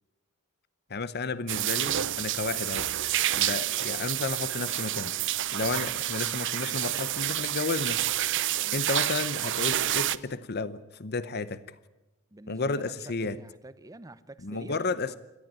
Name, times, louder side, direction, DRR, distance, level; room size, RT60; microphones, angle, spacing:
voice 1, 0.9-2.9 3.3-5.1 5.5-8.1 8.7-11.6 12.5-13.4 14.4-15.2, left 3 dB, 50° left, 15 dB, 0.8 m, -32 dB
sound 1, 1.5-10.2, right 13 dB, 60° right, 0.7 m, -29 dB
voice 2, 12.3-14.8 15.0-15.2, right 1 dB, 15° right, 14 dB, 0.7 m, -48 dB
27.5 x 13.5 x 9.0 m, 1.0 s
head